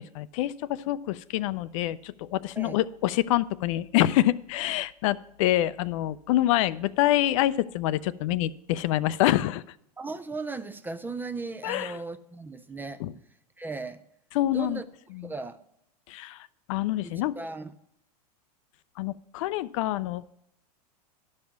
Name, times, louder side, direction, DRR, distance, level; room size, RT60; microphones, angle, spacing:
voice 1, 0.0-9.6 11.6-11.9 13.0-13.1 14.3-14.8 15.2-15.3 16.1-16.4 16.7-17.4 19.0-20.2, left 14 dB, 55° left, 0.4 m, -26 dB
voice 2, 10.0-13.3 13.6-14.0 14.5-14.9 15.2-15.6 17.0-17.7, right 3 dB, 10° right, 0.3 m, -37 dB
11.5 x 5.4 x 5.8 m
hypercardioid pair, 110°, 20 cm